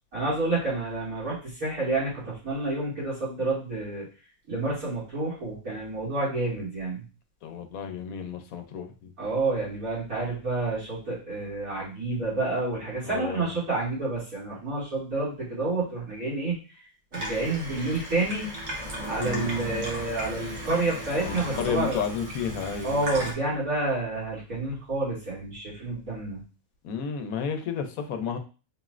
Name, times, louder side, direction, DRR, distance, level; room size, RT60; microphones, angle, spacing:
voice 1, 0.1-4.1 4.5-7.0 9.2-16.6 17.1-18.5 19.0-22.0 22.8-26.4, right 2 dB, 85° right, -9 dB, 3.0 m, -29 dB
voice 2, 7.4-9.1 13.0-13.6 19.2-19.6 21.2-23.0 26.8-28.4, left 7 dB, 80° left, 6 dB, 1.1 m, -32 dB
Water tap faucet / Sink (filling or washing), 17.1-23.3, equal, 35° right, 1.1 m, -35 dB
4.7 x 3.1 x 2.4 m, 0.34 s
omnidirectional pair, 1.5 m